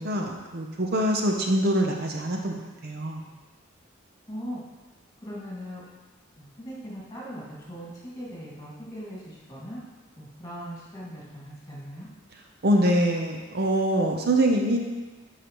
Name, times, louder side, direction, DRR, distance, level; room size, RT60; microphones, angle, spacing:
voice 1, 0.0-3.2 12.6-14.8, right 1 dB, 50° right, 2 dB, 0.7 m, -24 dB
voice 2, 4.3-4.6 5.2-5.8 6.4-9.8 10.2-12.1, equal, 20° left, -6 dB, 2.0 m, -39 dB
10.5 x 4.9 x 3.0 m, 1.3 s
head